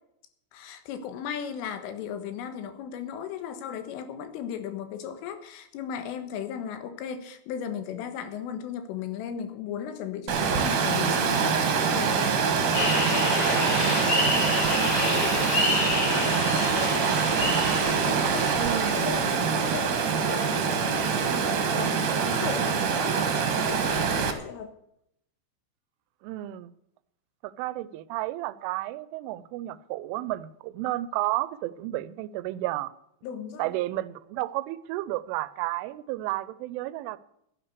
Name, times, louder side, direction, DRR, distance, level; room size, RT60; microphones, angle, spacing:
voice 1, 0.5-17.7 17.9-21.5 21.7-24.7 33.2-33.7, left 8 dB, 90° left, 4.0 m, -37 dB
Water, 10.3-24.3, right 6 dB, 60° right, 2.4 m, -25 dB
sound 1, 12.7-18.9, left 2 dB, 35° left, 2.7 m, -28 dB
voice 2, 18.6-19.1 21.3-21.6 22.6-22.7 26.2-26.7 27.4-32.9 33.6-37.2, right 16 dB, 85° right, 3.1 m, -32 dB
12.5 x 10.0 x 6.7 m
omnidirectional pair, 5.7 m